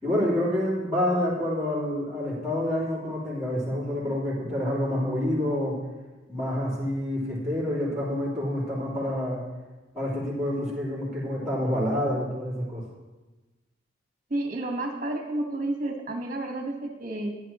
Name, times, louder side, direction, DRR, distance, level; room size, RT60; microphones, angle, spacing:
voice 1, 0.0-5.8 6.3-9.4 9.9-12.8, left 1 dB, 5° right, -7 dB, 3.8 m, -28 dB
voice 2, 14.3-17.4, right 2 dB, 40° right, 2 dB, 1.6 m, -31 dB
15.0 x 10.5 x 3.1 m, 1.2 s
head